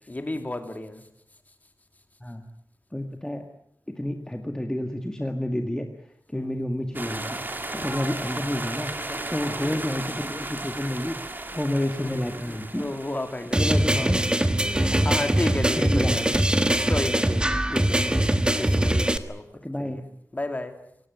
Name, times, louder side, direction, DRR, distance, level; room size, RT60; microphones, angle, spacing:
voice 1, 0.1-1.0 6.3-6.5 7.8-7.9 9.1-9.2 9.5-9.8 12.0-14.1 14.6-16.4 16.9-18.2 18.6-19.4 19.8-20.0 20.3-20.7, left 2 dB, 25° left, 7 dB, 2.8 m, -33 dB
voice 2, 2.9-3.5 3.9-5.9 6.3-8.9 9.3-11.2 11.5-12.9 13.5-14.2 14.9-15.2 15.8-16.4 18.0-18.2 19.6-20.0, left 1 dB, 10° left, 4 dB, 1.9 m, -30 dB
sound 1, 6.9-14.2, right 2 dB, 30° right, 2.5 m, -35 dB
sound 2, 13.5-19.2, right 1 dB, 15° right, 1.5 m, -22 dB
27.0 x 16.5 x 9.3 m, 0.75 s
wide cardioid pair, 105°, 6 cm